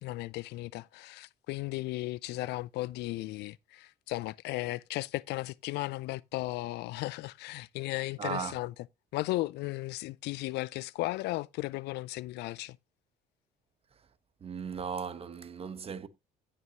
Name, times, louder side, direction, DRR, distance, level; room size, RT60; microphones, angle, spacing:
voice 1, 0.0-8.7 9.1-12.8, left 18 dB, 80° left, 0.4 m, -35 dB
voice 2, 8.2-8.5 14.4-16.1, right 6 dB, 35° right, 1.2 m, -37 dB
16.0 x 5.6 x 2.9 m
cardioid pair, 110°, 17 cm